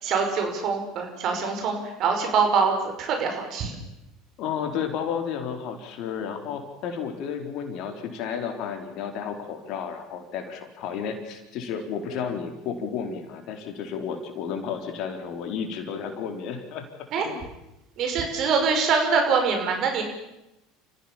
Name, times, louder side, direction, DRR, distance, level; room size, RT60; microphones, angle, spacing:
voice 1, 0.0-3.7 17.1-17.2 18.0-20.0, right 5 dB, 50° right, 4 dB, 6.1 m, -24 dB
voice 2, 4.4-16.9 17.3-17.4, left 7 dB, 55° left, 5 dB, 4.0 m, -32 dB
29.5 x 15.5 x 7.4 m, 0.90 s
hypercardioid pair, 75°, 0 cm